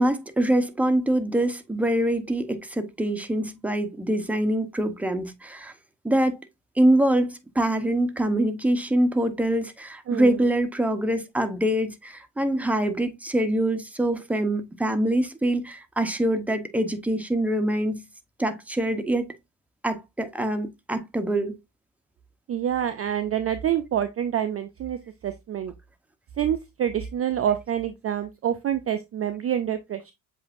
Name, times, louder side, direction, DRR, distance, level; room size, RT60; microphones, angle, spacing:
voice 1, 0.0-5.7 6.0-6.4 6.8-18.0 18.4-19.3 19.8-21.6, right 1 dB, 5° right, 0.8 m, -24 dB
voice 2, 10.1-10.4 22.5-25.7 26.4-30.1, right 10 dB, 30° right, 0.5 m, -27 dB
7.6 x 2.7 x 2.5 m
hypercardioid pair, 60°, 47 cm